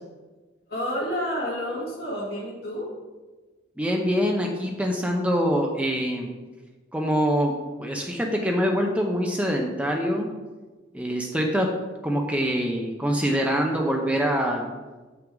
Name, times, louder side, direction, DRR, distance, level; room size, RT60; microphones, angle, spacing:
voice 1, 0.7-2.9, equal, 50° left, -5 dB, 2.3 m, -29 dB
voice 2, 3.8-6.3 6.9-7.5 7.8-10.3 10.9-11.7 12.0-14.6, equal, 5° right, 1 dB, 0.6 m, -24 dB
7.5 x 5.9 x 3.8 m, 1.3 s
head